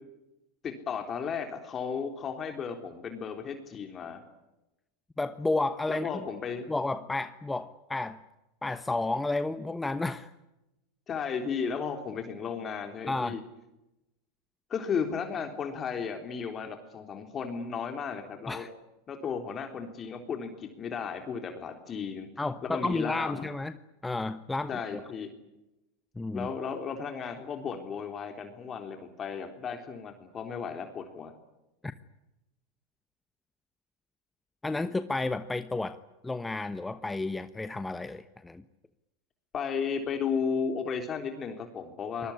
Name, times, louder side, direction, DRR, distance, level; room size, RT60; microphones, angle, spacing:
voice 1, 0.6-4.2 5.9-6.7 11.1-13.4 14.7-18.7 19.1-22.3 22.7-23.5 24.7-25.3 26.3-31.3 39.5-42.3, left 6 dB, 30° left, 5 dB, 3.6 m, -34 dB
voice 2, 5.2-6.2 6.7-8.2 8.6-10.3 13.1-13.4 18.5-18.7 22.4-23.8 24.0-25.0 26.1-26.5 31.8-31.9 34.6-36.0 36.2-38.6, left 2 dB, 10° left, 11 dB, 1.1 m, -31 dB
25.0 x 21.0 x 9.9 m, 0.96 s
hypercardioid pair, 95°, 0 cm